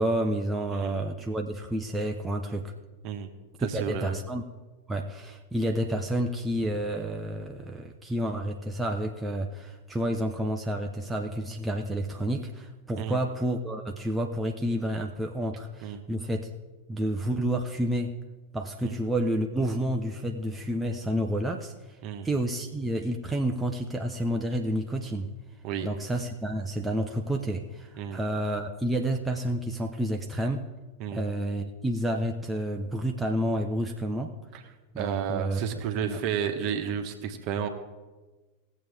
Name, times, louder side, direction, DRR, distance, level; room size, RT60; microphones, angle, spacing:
voice 1, 0.0-2.7 3.7-4.4 4.9-16.5 16.9-18.1 18.5-21.7 22.2-25.3 25.8-30.6 31.1-34.4 34.9-35.6 36.0-36.2, right 1 dB, 5° right, 1 dB, 0.8 m, -30 dB
voice 2, 3.6-4.2 13.0-13.2 15.8-16.0 18.8-18.9 22.0-22.3 25.6-25.9 28.0-28.2 31.0-31.2 34.5-34.6 35.0-37.7, right 8 dB, 40° right, 5 dB, 1.3 m, -32 dB
19.0 x 7.6 x 3.5 m, 1.2 s
figure-of-eight pair, 90°, 0 cm